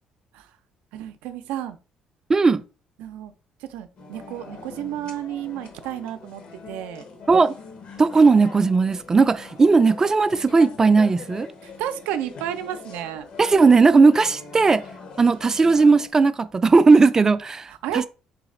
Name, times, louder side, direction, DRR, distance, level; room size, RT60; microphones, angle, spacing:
voice 1, 0.9-1.8 3.0-3.3 3.6-7.0 11.6-13.3 17.8-18.0, right 11 dB, 90° right, 0.4 m, -32 dB
voice 2, 2.3-2.6 7.3-7.5 8.0-11.5 13.4-14.8 15.2-18.1, right 4 dB, 25° right, 0.3 m, -17 dB
sound 1, 4.0-16.1, left 4 dB, 65° left, 1.0 m, -43 dB
3.9 x 2.4 x 4.1 m
cardioid pair, 95°, 2 cm